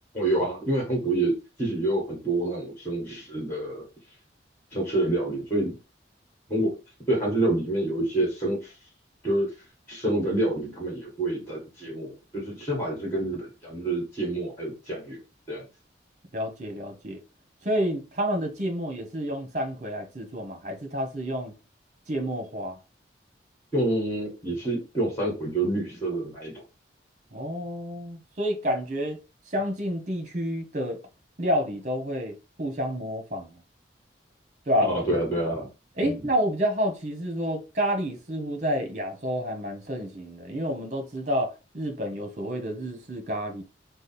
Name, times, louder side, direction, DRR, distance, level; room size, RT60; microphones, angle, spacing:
voice 1, 0.1-1.3 1.6-3.8 4.7-5.8 6.5-6.7 7.1-8.7 9.2-9.5 9.9-15.2 15.5-15.6 23.7-26.6 34.8-35.7 36.0-36.2, right 1 dB, 15° left, 1.6 m, -27 dB
voice 2, 16.3-17.2 17.6-21.5 22.1-22.8 27.3-29.2 29.5-31.0 31.4-33.6 34.7-34.9 36.0-43.6, equal, 40° right, 1.0 m, -29 dB
4.9 x 2.1 x 4.1 m
head